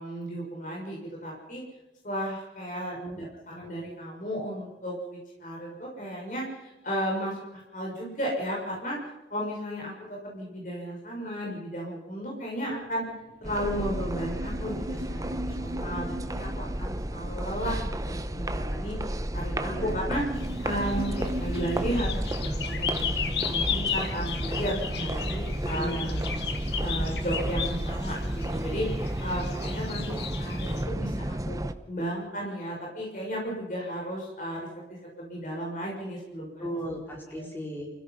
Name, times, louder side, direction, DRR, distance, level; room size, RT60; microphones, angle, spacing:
voice 1, 0.0-1.6 2.0-9.0 9.3-13.0 13.4-20.2 20.6-25.9 26.8-28.9 29.2-31.6 31.8-34.6 34.9-36.6 37.3-37.4, equal, 45° left, -2 dB, 6.4 m, -34 dB
sound 1, 12.8-22.1, equal, 50° right, 3.7 m, -39 dB
sound 2, 13.4-31.7, right 1 dB, 20° right, 0.8 m, -32 dB
voice 2, 19.7-20.1 25.2-26.4 36.6-37.9, equal, 10° left, -1 dB, 4.2 m, -37 dB
sound 3, 20.4-30.8, left 7 dB, 75° left, 2.0 m, -35 dB
29.5 x 16.5 x 5.6 m, 0.98 s
head